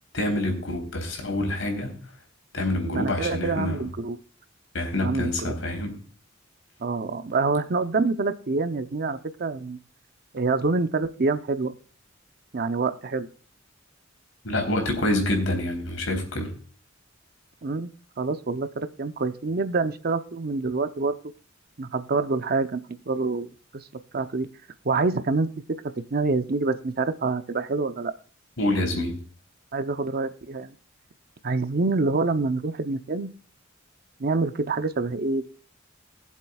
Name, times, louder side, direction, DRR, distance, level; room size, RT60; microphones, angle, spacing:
voice 1, 0.1-2.0 2.5-3.8 4.7-6.0 14.4-16.5 28.6-29.2, left 1 dB, 85° left, 3 dB, 3.5 m, -26 dB
voice 2, 2.9-4.2 5.0-5.3 6.8-9.8 10.3-11.7 12.5-13.3 17.6-17.9 18.2-21.2 21.8-23.5 23.7-23.9 24.1-24.5 24.8-25.5 26.1-28.1 29.7-30.7 31.4-33.3 34.2-35.4, right 3 dB, 50° right, 10 dB, 0.7 m, -26 dB
21.0 x 7.4 x 2.3 m, 0.43 s
head